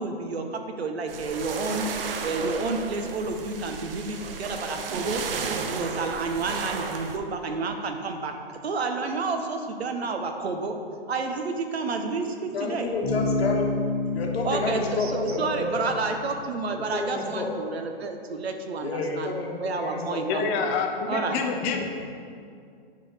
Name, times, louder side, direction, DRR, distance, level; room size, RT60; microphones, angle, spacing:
voice 1, 0.0-5.2 5.5-10.8 11.1-12.9 14.4-19.3 19.6-20.7 21.1-21.4, right 3 dB, 90° right, 5 dB, 1.0 m, -30 dB
sound 1, 1.1-7.2, right 5 dB, 65° right, 0.8 m, -34 dB
voice 2, 12.5-13.7 14.1-15.9 16.7-17.5 18.8-20.2 21.7-21.9, left 3 dB, 80° left, 1 dB, 1.4 m, -30 dB
Bass guitar, 13.0-16.7, left 3 dB, 50° left, 1.3 m, -30 dB
voice 3, 20.3-21.9, left 5 dB, 15° left, 3 dB, 0.3 m, -27 dB
8.4 x 4.0 x 5.0 m, 2.3 s
hypercardioid pair, 140°, 31 cm